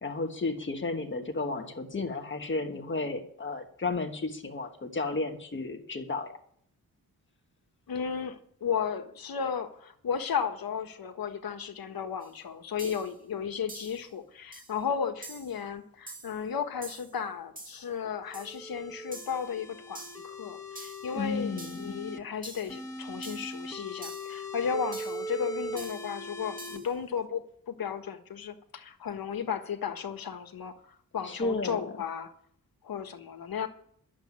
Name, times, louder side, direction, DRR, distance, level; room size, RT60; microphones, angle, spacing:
voice 1, 0.0-6.3 21.1-22.0 31.2-32.0, left 3 dB, 35° left, 5 dB, 1.3 m, -33 dB
voice 2, 7.9-30.7 31.1-32.3 32.8-33.7, left 7 dB, 75° left, 7 dB, 1.5 m, -34 dB
sound 1, 12.2-12.3 12.8-13.1 13.7-14.0 14.5-14.8 15.2-15.6 16.1-16.4 16.8-17.1 17.6-17.9 18.3-18.6 19.1-19.4 19.9-20.3 20.8-21.1 21.6-21.9 22.4-22.8 23.2-23.6 24.0-24.4 24.9-25.3 25.8-26.1 26.6-26.9, right 2 dB, 25° right, 1.8 m, -46 dB
sound 2, 18.3-22.2 22.7-26.8, equal, 10° left, 1.3 m, -40 dB
11.5 x 7.5 x 9.5 m, 0.64 s
wide cardioid pair, 165°, 36 cm